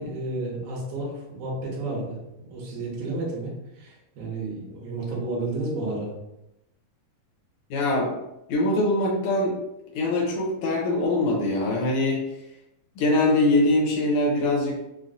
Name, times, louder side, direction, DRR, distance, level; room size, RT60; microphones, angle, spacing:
voice 1, 0.0-2.2 2.5-6.1, right 2 dB, 75° right, -4 dB, 2.5 m, -31 dB
voice 2, 7.7-8.1 8.5-9.5 9.9-12.2 13.0-14.8, left 2 dB, 75° left, -2 dB, 1.7 m, -23 dB
5.8 x 2.1 x 2.5 m, 0.88 s
omnidirectional pair, 4.0 m